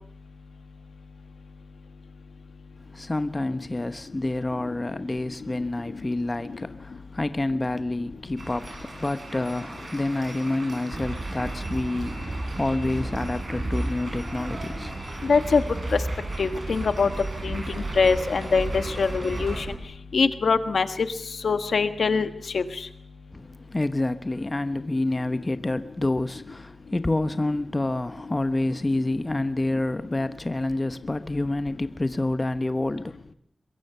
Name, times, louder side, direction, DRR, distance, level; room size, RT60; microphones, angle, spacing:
voice 1, 2.9-14.9 23.3-33.3, left 2 dB, 25° left, 1.0 m, -28 dB
sound 1, 8.4-19.6, right 2 dB, 50° right, 6.9 m, -40 dB
sound 2, 10.9-19.8, right 2 dB, 35° right, 6.6 m, -33 dB
voice 2, 15.2-15.6 15.9-16.0 16.4-17.1 17.4-19.6 20.1-21.1 21.4-22.3 22.5-22.6, left 4 dB, 80° left, 1.5 m, -23 dB
23.0 x 22.5 x 6.9 m
wide cardioid pair, 90°, 0 cm